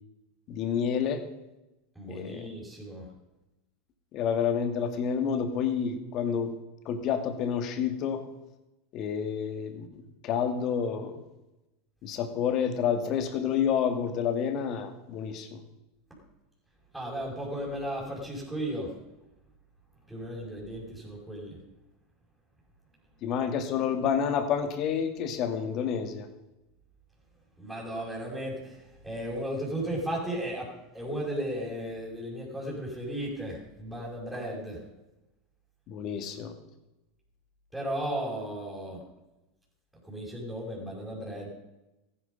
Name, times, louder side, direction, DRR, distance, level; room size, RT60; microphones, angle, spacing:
voice 1, 0.5-1.2 2.1-2.5 4.1-6.5 6.9-8.2 8.9-11.2 12.0-15.6 23.2-26.3 35.9-36.5, left 7 dB, 50° left, 8 dB, 2.3 m, -29 dB
voice 2, 2.0-3.0 16.9-18.9 20.1-21.6 27.6-30.7 30.9-34.8 37.7-39.0 40.0-41.5, right 1 dB, 5° right, -5 dB, 5.6 m, -35 dB
14.5 x 11.5 x 5.3 m, 0.98 s
hypercardioid pair, 95°, 0 cm